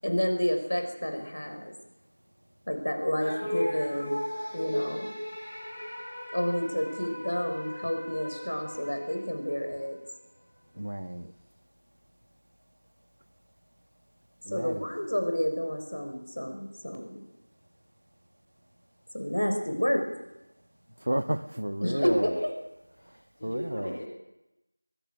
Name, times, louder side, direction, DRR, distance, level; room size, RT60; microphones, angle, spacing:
voice 1, 0.0-1.7 2.7-4.2 4.5-5.1 6.3-10.0 14.5-17.2 19.1-20.0 21.8-22.6, equal, 65° left, 5 dB, 6.2 m, -30 dB
sound 1, 3.2-9.8, left 1 dB, 5° left, 4.6 m, -36 dB
voice 2, 10.8-11.3 14.5-14.7 21.1-22.2 23.4-23.9, right 1 dB, 55° right, 12 dB, 1.3 m, -31 dB
voice 3, 21.9-22.5 23.4-24.1, left 1 dB, 20° left, -2 dB, 3.6 m, -38 dB
23.5 x 19.0 x 6.6 m, 0.93 s
figure-of-eight pair, 175°, 0 cm